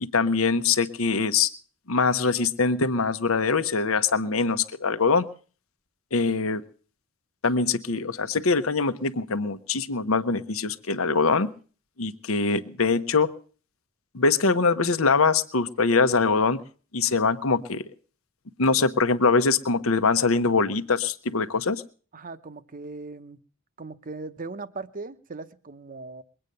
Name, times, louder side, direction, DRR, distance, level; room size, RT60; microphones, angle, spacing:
voice 1, 0.0-1.5 1.9-5.3 6.1-6.6 7.4-11.5 12.0-13.3 14.1-16.6 16.9-17.8 18.6-21.8, left 4 dB, 85° left, 11 dB, 1.0 m, -23 dB
voice 2, 22.1-23.4 23.8-26.2, right 3 dB, 40° right, 11 dB, 0.9 m, -39 dB
22.0 x 8.9 x 6.7 m, 0.42 s
head